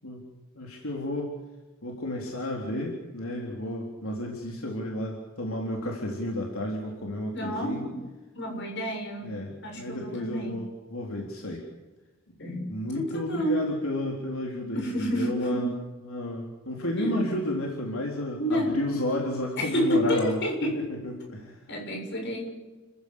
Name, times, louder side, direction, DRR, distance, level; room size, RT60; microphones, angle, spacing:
voice 1, 0.6-1.4 1.8-7.8 9.2-11.6 12.3-12.4 12.7-15.7 16.0-20.4 20.7-21.6, left 1 dB, 80° left, 0 dB, 3.9 m, -32 dB
voice 2, 7.3-8.0 8.3-9.3 9.6-10.6 12.4-13.7 14.7-15.8 17.0-17.2 18.4-18.8 19.6-20.8 21.7-22.5, equal, 55° left, 3 dB, 7.2 m, -29 dB
30.0 x 15.5 x 8.5 m, 1.2 s
head